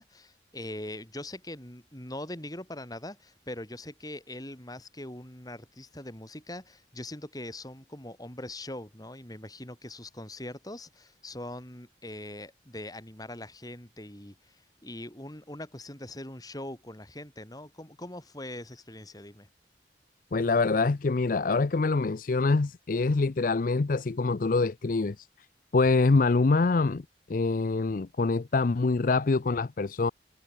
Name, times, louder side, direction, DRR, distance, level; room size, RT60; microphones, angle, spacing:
voice 1, 0.0-19.5, left 1 dB, 20° left, 4.9 m, -42 dB
voice 2, 20.3-25.3 25.7-27.0 27.3-30.1, left 3 dB, 50° left, 0.5 m, -25 dB
head